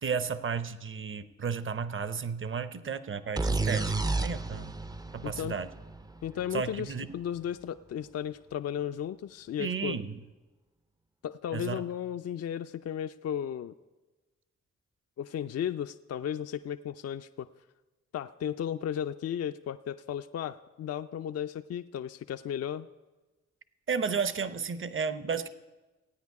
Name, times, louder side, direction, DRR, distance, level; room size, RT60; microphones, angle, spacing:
voice 1, 0.0-4.8 5.1-5.7 6.5-7.1 9.6-10.2 11.5-11.8 23.9-25.5, right 6 dB, 45° right, 12 dB, 0.8 m, -33 dB
sound 1, 3.4-7.0, right 3 dB, 15° right, 0.5 m, -32 dB
voice 2, 5.2-5.6 6.2-10.0 11.2-13.7 15.2-17.5 18.1-22.9, left 9 dB, 55° left, 9 dB, 0.4 m, -35 dB
16.5 x 9.2 x 4.7 m, 1.2 s
supercardioid pair, 45°, 29 cm